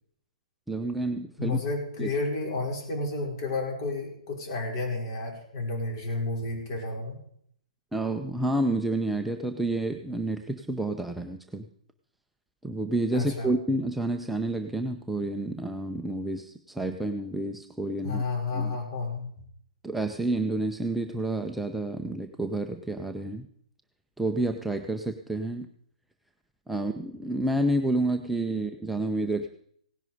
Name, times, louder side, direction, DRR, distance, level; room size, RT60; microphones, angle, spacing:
voice 1, 0.7-1.6 2.0-2.1 7.9-11.7 12.6-18.2 18.5-18.8 19.8-23.5 24.2-25.7 26.7-29.5, right 2 dB, 5° right, 4 dB, 0.7 m, -29 dB
voice 2, 1.4-7.2 13.1-13.5 18.0-19.3, left 3 dB, 40° left, 0 dB, 5.4 m, -31 dB
17.5 x 10.5 x 5.1 m, 0.65 s
figure-of-eight pair, 120°, 4 cm